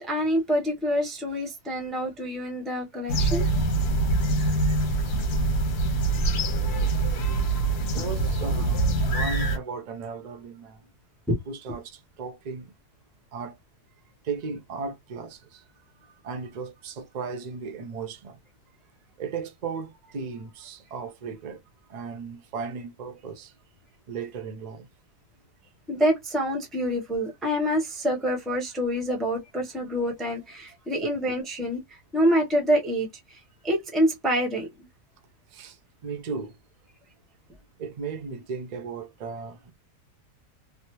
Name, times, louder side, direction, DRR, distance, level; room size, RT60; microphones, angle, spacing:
voice 1, 0.0-3.5 11.3-11.4 25.9-33.4 33.6-34.7, equal, ahead, 0.5 m, -26 dB
sound 1, 3.1-9.6, right 2 dB, 85° left, 1.4 m, -24 dB
voice 2, 7.9-10.8 11.5-12.7 13.3-13.6 14.2-15.6 16.2-18.4 19.2-21.6 21.9-23.5 24.1-24.9 35.5-35.8 36.0-36.5 37.8-39.7, right 5 dB, 75° right, 0.3 m, -36 dB
3.2 x 2.0 x 3.0 m
omnidirectional pair, 1.6 m